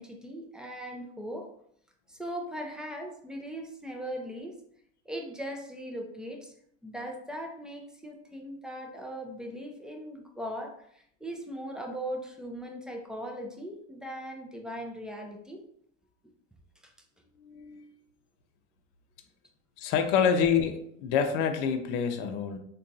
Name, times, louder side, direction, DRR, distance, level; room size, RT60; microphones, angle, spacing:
voice 1, 0.0-1.5 2.1-4.6 5.1-6.5 6.8-15.6 16.8-16.9, equal, ahead, 2 dB, 0.3 m, -39 dB
voice 2, 17.4-17.9 19.8-22.6, left 7 dB, 60° left, 6 dB, 0.6 m, -27 dB
3.5 x 2.3 x 2.6 m, 0.69 s
supercardioid pair, 105°, 33 cm